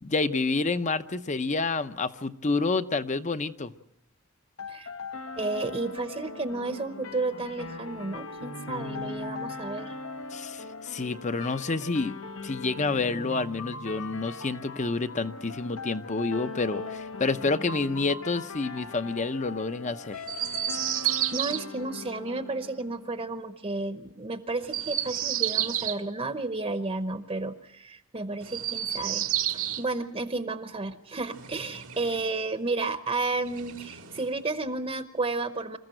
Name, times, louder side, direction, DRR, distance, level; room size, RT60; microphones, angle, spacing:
voice 1, 0.0-3.7 10.3-12.1 12.4-20.2, left 3 dB, 35° left, 11 dB, 0.7 m, -29 dB
sound 1, 4.6-23.5, left 3 dB, 70° left, 1.1 m, -40 dB
voice 2, 5.4-9.9 21.3-29.2 29.5-35.8, right 3 dB, 30° right, 9 dB, 0.9 m, -32 dB
Chirp tweet, 20.2-21.6 24.6-26.0 28.4-29.8 31.3-32.3 33.4-34.3, right 11 dB, 85° right, 1.8 m, -30 dB
26.5 x 14.5 x 7.8 m, 0.82 s
head